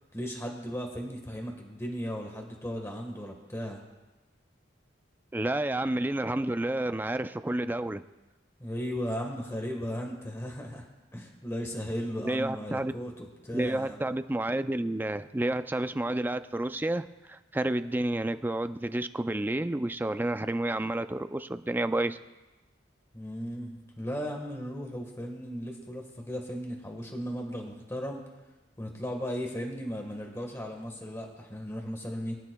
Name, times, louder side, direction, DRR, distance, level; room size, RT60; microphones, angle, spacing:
voice 1, 0.1-3.8 8.6-10.8 11.1-14.0 23.1-28.2 28.8-32.4, equal, 15° left, 1 dB, 1.4 m, -36 dB
voice 2, 5.3-8.0 12.2-12.9 13.5-22.2, right 1 dB, 10° right, 11 dB, 0.3 m, -30 dB
23.5 x 10.5 x 2.2 m, 1.1 s
head